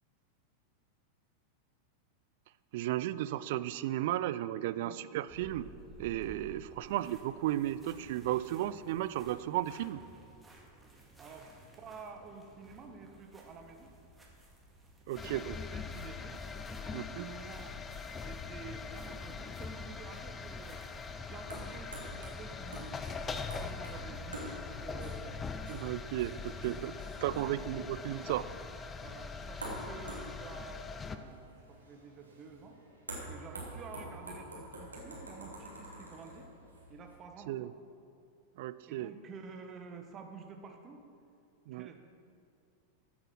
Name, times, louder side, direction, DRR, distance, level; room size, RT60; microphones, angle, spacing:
voice 1, 2.7-5.7 6.0-10.0 15.1-15.6 16.9-17.3 25.7-28.5 37.5-37.7 38.6-39.1 41.7-41.9, right 14 dB, 50° right, 15 dB, 0.4 m, -34 dB
sound 1, 5.3-21.2, right 1 dB, 10° right, 2.1 m, -56 dB
voice 2, 6.7-7.1 11.2-13.9 15.2-16.4 16.8-17.7 18.1-20.8 21.1-25.4 27.5-27.7 29.0-32.8 33.2-36.5 36.9-37.7 38.9-41.0 41.7-42.0, right 5 dB, 30° right, 4 dB, 1.4 m, -50 dB
sound 2, 15.2-31.2, left 5 dB, 20° left, 0.6 m, -42 dB
sound 3, 19.4-37.2, right 1 dB, 80° right, 2.7 m, -48 dB
14.5 x 7.8 x 6.1 m, 2.4 s
figure-of-eight pair, 90°, 0 cm